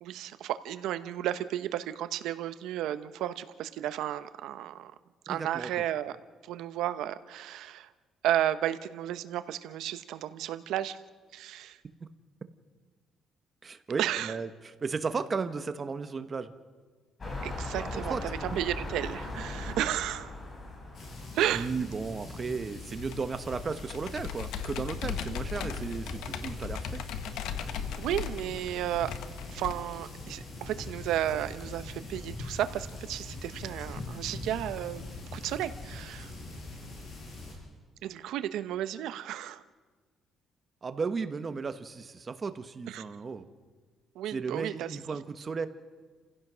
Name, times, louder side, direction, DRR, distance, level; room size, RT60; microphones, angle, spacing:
voice 1, 0.0-4.9 5.3-6.2 6.4-7.9 8.2-11.0 11.3-11.8 14.0-14.3 17.4-20.3 21.3-21.7 28.0-29.1 29.5-35.0 35.3-36.3 38.0-39.6 42.9-43.0 44.1-45.0, right 12 dB, 85° right, 12 dB, 0.9 m, -33 dB
voice 2, 5.3-5.7 12.0-12.1 13.6-14.5 14.8-16.5 17.8-18.2 18.5-18.6 21.5-27.0 40.8-43.5 44.3-45.7, right 5 dB, 30° right, 10 dB, 1.2 m, -35 dB
sound 1, 17.2-22.2 22.8-22.9, left 2 dB, 30° left, 5.8 m, -39 dB
sound 2, 20.9-37.6, left 2 dB, 50° left, 7.6 m, -42 dB
Computer keyboard, 23.0-29.7, left 9 dB, 90° left, 1.3 m, -38 dB
29.5 x 16.0 x 6.3 m, 1.5 s
cardioid pair, 130°, 0 cm